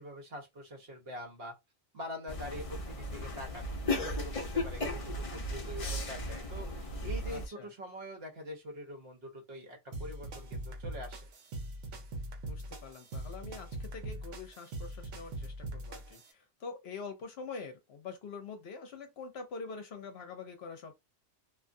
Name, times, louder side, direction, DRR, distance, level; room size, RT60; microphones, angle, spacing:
voice 1, 0.0-1.5 1.9-11.3, left 1 dB, 60° right, 1.1 m, -44 dB
sound 1, 2.3-7.5, left 1 dB, 40° left, 0.5 m, -36 dB
voice 2, 7.2-7.7 12.5-21.0, left 4 dB, 60° left, 0.8 m, -45 dB
sound 2, 9.9-16.3, right 1 dB, 85° right, 1.0 m, -42 dB
2.5 x 2.3 x 2.6 m
omnidirectional pair, 1.2 m